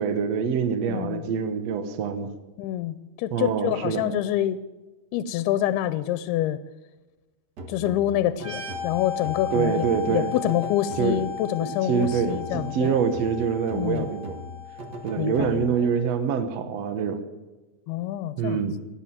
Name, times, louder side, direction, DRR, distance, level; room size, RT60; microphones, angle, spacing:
voice 1, 0.0-2.3 3.3-4.1 9.5-10.3 11.0-11.2 11.8-14.4 15.0-17.2 18.4-18.8, right 6 dB, 65° right, 9 dB, 1.6 m, -25 dB
voice 2, 0.8-1.2 2.6-4.6 5.1-6.6 7.7-13.0 13.7-14.1 15.2-15.7 17.9-18.6, left 12 dB, 90° left, 14 dB, 2.6 m, -27 dB
sound 1, 7.6-11.4 12.0-15.9, equal, 85° right, 0.9 m, -40 dB
sound 2, 8.4-15.9, left 8 dB, 35° right, 4.4 m, -36 dB
17.0 x 10.5 x 7.6 m, 1.2 s
omnidirectional pair, 4.5 m